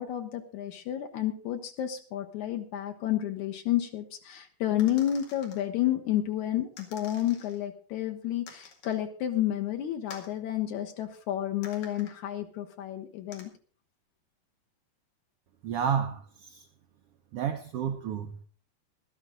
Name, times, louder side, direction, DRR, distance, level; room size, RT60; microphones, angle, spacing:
voice 1, 0.0-13.5, left 12 dB, 75° left, 2.2 m, -31 dB
sound 1, 4.8-5.6 6.8-7.6 8.5-9.0 10.1-10.4 11.6-12.1 13.3-13.4, left 5 dB, 90° left, 3.9 m, -48 dB
voice 2, 15.6-16.7 17.3-18.5, right 8 dB, 85° right, 1.3 m, -31 dB
15.0 x 12.5 x 3.9 m
omnidirectional pair, 3.7 m